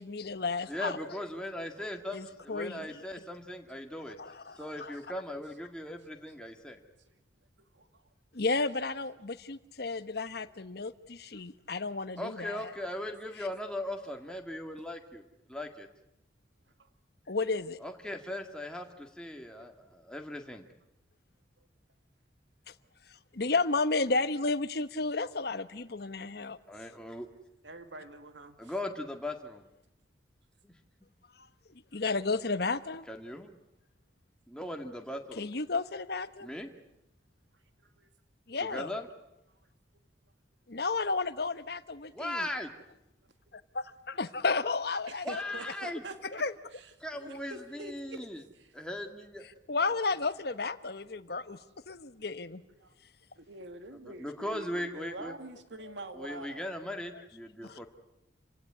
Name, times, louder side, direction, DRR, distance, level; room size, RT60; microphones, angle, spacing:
voice 1, 0.0-1.0 2.1-2.9 4.2-5.0 8.3-12.6 17.3-17.8 23.3-26.6 31.9-33.1 35.4-36.5 38.5-38.9 40.7-42.5 43.7-45.4 46.4-46.5 49.7-51.6 51.9-52.6 57.6-57.8, left 3 dB, 60° left, 12 dB, 1.1 m, -32 dB
voice 2, 0.7-4.2 4.6-6.8 12.2-15.2 15.5-15.9 17.8-20.7 26.7-27.3 28.6-29.6 30.6-30.7 33.1-33.5 34.5-35.5 36.4-36.7 38.6-39.1 42.1-42.7 45.2-46.0 47.0-48.4 48.7-49.5 54.0-55.3 56.2-57.9, left 1 dB, 5° left, 3 dB, 2.0 m, -39 dB
voice 3, 4.5-4.9 7.6-8.1 9.9-10.1 10.4-10.5 11.2-11.4 16.8-16.9 19.3-19.7 26.1-26.2 27.0-27.2 27.6-28.7 38.0-38.1 42.1-42.2 44.1-44.4 45.1-46.4 46.7-48.2 48.5-48.7 51.5-51.6 52.7-52.9 53.3-56.7, right 2 dB, 75° right, 8 dB, 2.2 m, -47 dB
28.5 x 16.5 x 9.7 m, 0.88 s
head